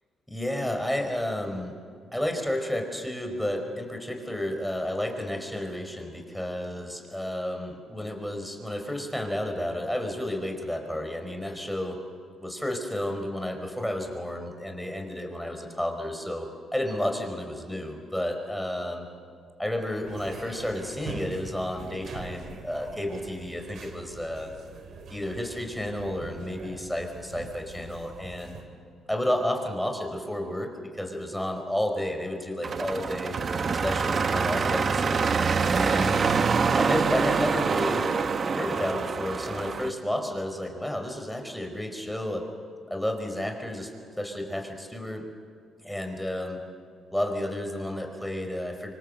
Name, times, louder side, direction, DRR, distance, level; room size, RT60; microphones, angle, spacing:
voice 1, 0.3-1.7 2.1-12.0 12.4-19.1 19.6-24.5 25.1-28.6 29.1-33.4 33.8-35.3 35.7-36.2 36.7-38.1 38.5-42.5 42.9-43.9 44.2-45.2 45.8-46.6 47.1-48.9, left 1 dB, 5° left, 4 dB, 4.7 m, -31 dB
sound 1, 20.1-28.6, right 4 dB, 65° right, 3.5 m, -43 dB
sound 2, 32.6-39.9, right 5 dB, 45° right, 1.2 m, -25 dB
25.5 x 25.0 x 7.8 m, 2.1 s
cardioid pair, 90°, 0 cm